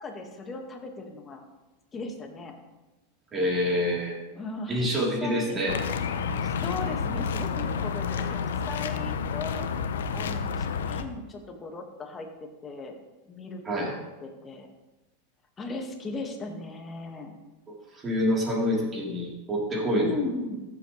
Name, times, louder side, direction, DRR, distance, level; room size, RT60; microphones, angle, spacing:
voice 1, 0.0-1.4 1.9-2.5 4.3-5.6 6.4-8.4 8.7-9.7 10.1-13.0 13.3-14.7 15.6-17.3 19.9-20.6, left 3 dB, 20° left, 3 dB, 1.8 m, -37 dB
voice 2, 3.3-4.2 4.7-5.8 8.2-8.3 8.7-9.0 13.7-13.9 17.9-20.2, equal, 25° right, -3 dB, 3.6 m, -27 dB
sound 1, 5.7-11.0, left 6 dB, 85° left, 0.7 m, -30 dB
14.0 x 7.6 x 3.3 m, 1.1 s
hypercardioid pair, 120°, 0 cm